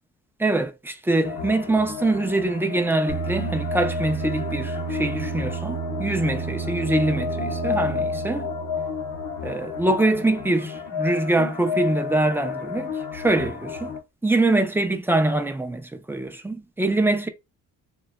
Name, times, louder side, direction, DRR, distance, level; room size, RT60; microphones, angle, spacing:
voice 1, 0.4-8.5 9.4-13.9 14.2-17.3, right 2 dB, 10° right, 0.3 m, -24 dB
sound 1, 1.2-14.0, left 6 dB, 75° left, 0.6 m, -32 dB
sound 2, 3.1-9.7, right 7 dB, 55° right, 0.8 m, -32 dB
2.6 x 2.2 x 2.2 m
cardioid pair, 90°, 30 cm